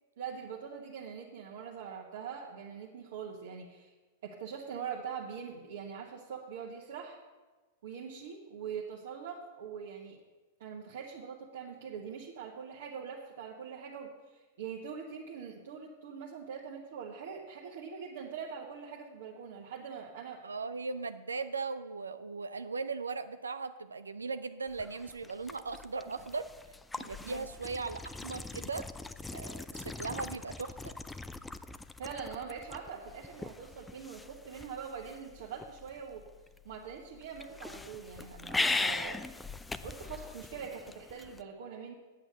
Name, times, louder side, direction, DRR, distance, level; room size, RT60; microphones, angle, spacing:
voice 1, 0.2-3.9 4.2-7.2 7.8-10.2 10.6-20.4 27.2-27.5 32.0-36.2 36.6-39.2 39.8-41.9, right 7 dB, 65° right, -3 dB, 1.3 m, -43 dB
voice 2, 20.4-26.5 27.0-28.9 29.3-30.9, right 4 dB, 85° right, 11 dB, 0.4 m, -38 dB
sound 1, 24.7-41.4, left 3 dB, 10° left, 0.5 m, -40 dB
8.8 x 8.2 x 6.7 m, 1.3 s
hypercardioid pair, 100°, 0 cm